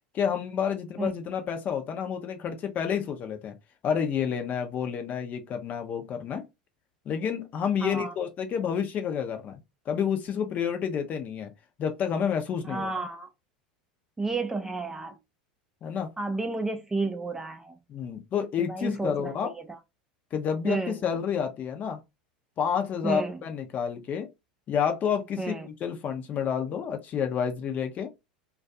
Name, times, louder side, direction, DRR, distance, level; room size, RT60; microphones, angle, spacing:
voice 1, 0.1-3.6 3.8-6.5 7.1-9.6 9.9-11.5 11.8-12.9 15.8-16.1 17.9-19.5 20.3-22.0 22.6-24.3 24.7-28.1, left 7 dB, 40° left, 0.6 m, -29 dB
voice 2, 7.8-8.1 12.6-13.3 14.2-15.2 16.2-17.8 18.6-19.7 20.6-21.2 23.0-23.4 25.4-25.7, right 3 dB, 10° right, 0.4 m, -31 dB
2.3 x 2.3 x 2.6 m
hypercardioid pair, 85°, 5 cm